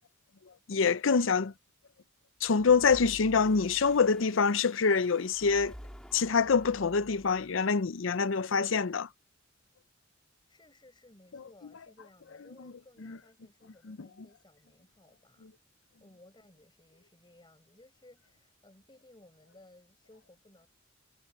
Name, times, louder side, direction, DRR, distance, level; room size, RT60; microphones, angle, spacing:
voice 1, 0.7-1.5 2.4-5.7 6.1-9.1 13.1-13.2 13.9-14.0, left 5 dB, 65° left, 0.6 m, -25 dB
sound 1, 2.4-7.7, equal, 5° left, 2.6 m, -50 dB
voice 2, 10.5-15.5 16.0-20.7, left 1 dB, 20° left, 5.0 m, -59 dB
head